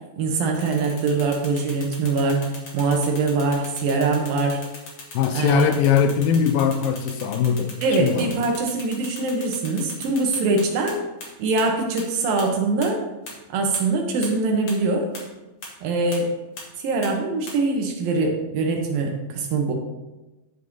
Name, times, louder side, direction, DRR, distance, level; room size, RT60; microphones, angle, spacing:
voice 1, 0.2-2.4 2.7-4.6 5.3-5.7 7.8-11.0 11.4-13.0 13.5-15.1 15.8-16.3 16.8-19.7, right 3 dB, 75° right, 2 dB, 2.9 m, -23 dB
sound 1, 0.5-10.9 11.2-11.3 11.6-11.7 12.0-12.1 12.4-12.5 12.8-12.9 13.3-13.4 13.7-13.8 14.2-14.3 14.7-14.8 15.1-15.2 15.6-15.7 16.1-16.2 16.6-16.7 17.0-17.1 17.5-17.6, left 3 dB, 45° left, 2.0 m, -38 dB
voice 2, 5.1-8.3, left 7 dB, 80° left, 8 dB, 2.4 m, -21 dB
11.0 x 5.5 x 3.9 m, 1.1 s
omnidirectional pair, 4.3 m